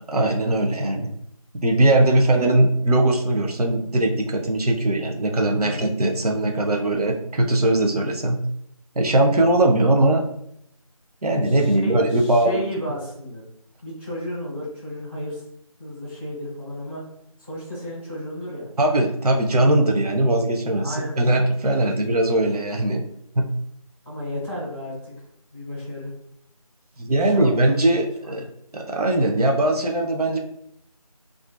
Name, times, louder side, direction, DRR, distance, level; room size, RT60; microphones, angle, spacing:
voice 1, 0.1-1.1 1.6-8.4 9.0-10.2 11.2-12.6 18.8-23.0 23.4-23.5 27.0-28.4 28.7-30.4, right 1 dB, 90° right, 1 dB, 0.6 m, -20 dB
voice 2, 5.4-5.8 11.4-13.4 13.8-15.4 15.8-17.0 17.4-18.7 20.8-21.2 21.7-21.9 24.0-25.1 25.5-26.1 27.1-28.5, left 1 dB, 20° right, -12 dB, 0.9 m, -33 dB
2.4 x 2.4 x 2.2 m, 0.71 s
figure-of-eight pair, 175°, 19 cm